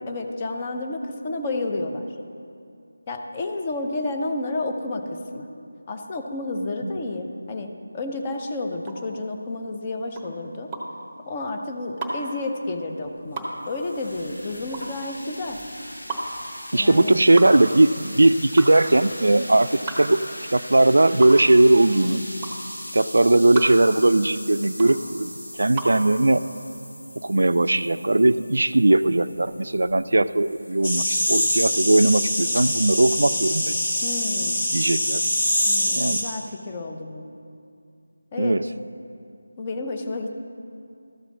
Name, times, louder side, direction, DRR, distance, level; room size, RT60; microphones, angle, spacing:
voice 1, 0.1-2.1 3.1-5.5 5.9-10.7 11.2-15.6 16.7-17.2 34.0-34.7 35.7-37.3 38.3-38.6 39.6-40.4, left 2 dB, 20° left, 3 dB, 0.6 m, -31 dB
sound 1, 8.8-26.0, right 2 dB, 10° right, 1.0 m, -34 dB
sound 2, 13.0-31.2, equal, 75° left, 2.6 m, -40 dB
voice 2, 16.7-20.2 20.5-22.2 22.9-25.3 25.6-26.4 27.2-33.7 34.7-35.3 36.0-36.2 38.4-38.6, right 2 dB, 65° right, 14 dB, 0.3 m, -19 dB
sound 3, 30.8-36.2, left 1 dB, 45° left, 2.0 m, -24 dB
13.0 x 5.0 x 7.2 m, 2.5 s
figure-of-eight pair, 160°, 0 cm